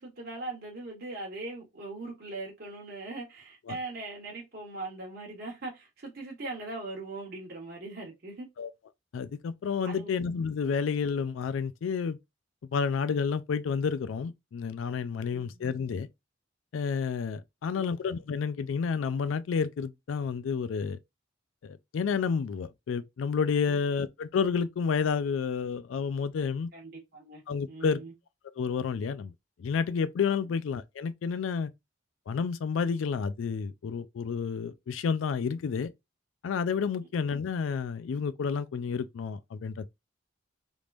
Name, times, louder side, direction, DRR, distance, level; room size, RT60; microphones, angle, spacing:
voice 1, 0.0-8.5 9.8-10.1 15.3-15.7 17.6-18.0 23.7-23.8 26.7-27.4 27.7-28.1, right 2 dB, 55° right, 1.2 m, -40 dB
voice 2, 9.1-12.2 12.7-16.1 16.7-21.0 21.6-26.7 27.5-28.0 28.6-29.3 29.6-31.7 32.3-35.9 36.4-39.9, left 6 dB, 85° left, 0.4 m, -30 dB
3.5 x 3.1 x 2.4 m
head